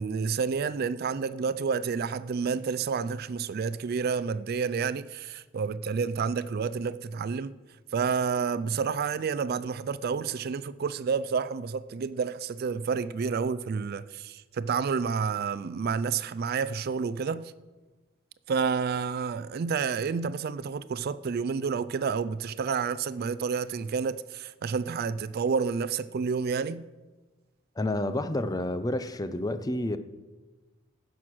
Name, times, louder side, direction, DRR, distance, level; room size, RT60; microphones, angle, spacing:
voice 1, 0.0-7.6 7.9-17.5 18.5-26.8, right 5 dB, 50° right, 0.3 m, -29 dB
voice 2, 27.8-30.0, left 1 dB, 20° left, 0.5 m, -29 dB
15.5 x 6.4 x 6.1 m
head